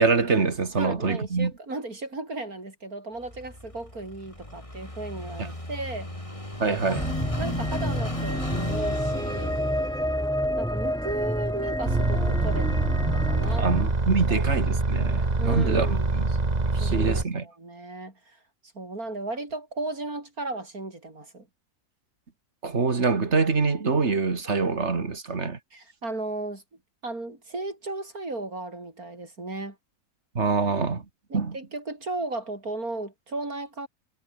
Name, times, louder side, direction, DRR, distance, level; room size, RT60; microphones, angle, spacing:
voice 1, 0.0-1.5 5.4-5.5 6.6-7.1 13.6-16.3 16.7-17.4 22.6-25.6 30.3-31.0 31.3-31.5, right 4 dB, 45° right, 2.3 m, -25 dB
voice 2, 0.8-6.1 6.6-7.0 7.4-9.6 10.6-12.7 13.1-13.7 14.2-14.5 15.4-16.1 16.8-18.1 18.7-21.5 25.7-26.6 27.0-29.8 31.3-33.9, right 2 dB, 65° right, 6.0 m, -35 dB
Car passing by / Idling, 3.2-13.9, left 1 dB, 20° left, 5.5 m, -37 dB
sound 1, 7.0-13.8, equal, ahead, 3.4 m, -29 dB
sound 2, 11.8-17.2, right 3 dB, 25° right, 2.0 m, -25 dB
omnidirectional pair, 1.6 m